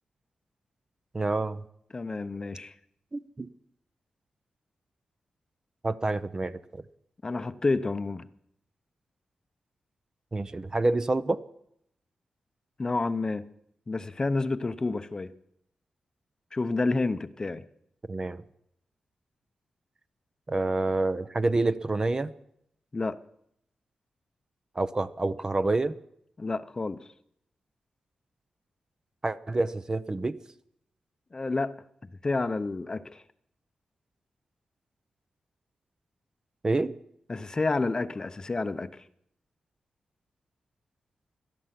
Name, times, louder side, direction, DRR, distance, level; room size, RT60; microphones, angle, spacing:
voice 1, 1.1-1.6 3.1-3.5 5.8-6.8 10.3-11.4 18.1-18.4 20.5-22.3 24.8-25.9 29.2-30.4 36.6-36.9, right 2 dB, 25° right, 0.6 m, -28 dB
voice 2, 1.9-2.7 7.2-8.3 12.8-13.5 13.9-15.3 16.5-17.6 22.9-23.2 26.4-27.1 31.3-31.7 32.0-33.2 37.3-39.0, left 3 dB, 30° left, 0.7 m, -29 dB
18.0 x 12.5 x 5.9 m
wide cardioid pair, 105°, 2 cm